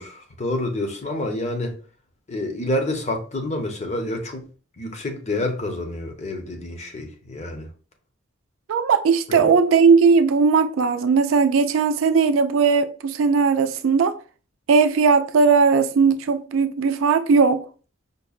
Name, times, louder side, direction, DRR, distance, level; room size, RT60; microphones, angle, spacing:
voice 1, 0.0-1.8 2.3-4.4 4.8-7.7 9.3-9.5, left 1 dB, 35° left, 0.7 m, -28 dB
voice 2, 8.7-14.1 14.7-17.6, right 5 dB, 70° right, 0.4 m, -18 dB
5.2 x 2.1 x 2.3 m
head